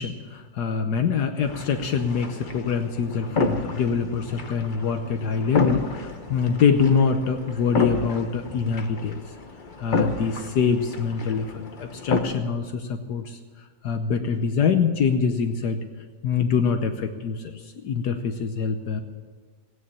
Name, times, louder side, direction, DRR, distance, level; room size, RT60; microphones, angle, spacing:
voice 1, 0.0-9.2 9.8-11.5 11.8-13.4 13.8-15.8 16.2-17.4 17.8-19.0, left 6 dB, 70° left, 6 dB, 1.4 m, -24 dB
sound 1, 1.4-12.2, left 3 dB, 30° left, 1.1 m, -31 dB
16.5 x 9.7 x 8.5 m, 1.5 s
omnidirectional pair, 1.9 m